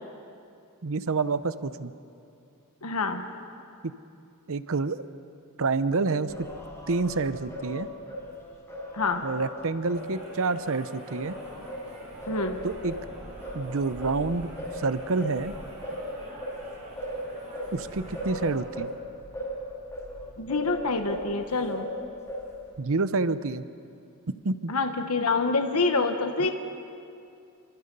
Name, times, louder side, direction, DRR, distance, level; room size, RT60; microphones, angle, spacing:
voice 1, 0.8-1.9 3.8-3.9 4.5-5.0 5.6-6.5 6.9-7.9 9.2-11.4 12.6-12.9 13.5-15.6 17.7-18.9 22.8-23.6 24.4-24.7, right 3 dB, 65° right, 13 dB, 0.8 m, -28 dB
voice 2, 2.8-3.3 8.9-9.3 12.3-12.6 20.4-21.9 24.7-26.5, left 3 dB, 75° left, 6 dB, 1.4 m, -26 dB
Singing, 6.3-10.7 11.1-21.3 21.7-22.7, equal, 10° left, 5.5 m, -38 dB
sound 1, 9.9-18.5, equal, 35° right, 6.6 m, -46 dB
28.5 x 25.0 x 5.5 m, 2.5 s
head